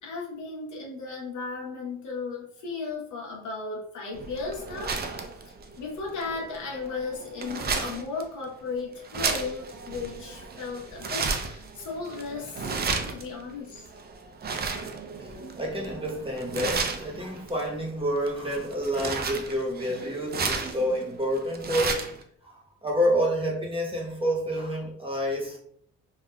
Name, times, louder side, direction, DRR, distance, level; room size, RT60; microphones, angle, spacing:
voice 1, 0.0-5.2 5.8-12.7 13.1-13.9, left 4 dB, 75° left, 1.0 m, -35 dB
sound 1, 4.1-22.2, right 4 dB, 35° right, 0.4 m, -34 dB
voice 2, 15.2-22.0 22.4-25.6, equal, 20° right, 0.9 m, -29 dB
3.4 x 2.3 x 2.2 m
cardioid pair, 90°, 30 cm